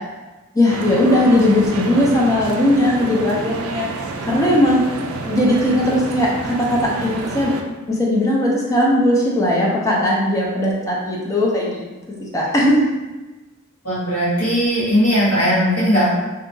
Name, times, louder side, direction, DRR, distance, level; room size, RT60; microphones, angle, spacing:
voice 1, 0.5-3.9 4.2-4.8 5.2-7.5 7.9-12.8, left 1 dB, 15° left, -4 dB, 0.4 m, -18 dB
sound 1, 0.6-7.6, right 3 dB, 75° right, 0.3 m, -29 dB
voice 2, 13.8-16.1, equal, 85° left, -11 dB, 1.3 m, -18 dB
2.7 x 2.3 x 2.6 m, 1.2 s
head